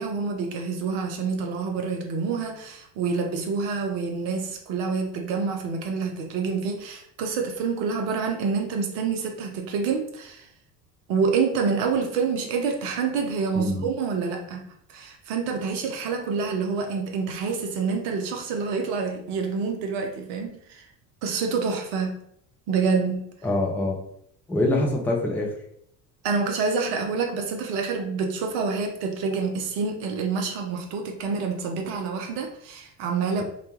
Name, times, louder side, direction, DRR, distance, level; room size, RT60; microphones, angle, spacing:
voice 1, 0.0-10.5 11.1-20.8 21.2-22.2 22.7-23.2 26.2-33.4, right 5 dB, 50° right, 4 dB, 0.6 m, -27 dB
voice 2, 13.6-13.9 23.4-24.0 24.5-25.5, left 2 dB, 5° left, 0 dB, 0.3 m, -24 dB
2.3 x 2.1 x 3.0 m, 0.69 s
figure-of-eight pair, 60°, 50 cm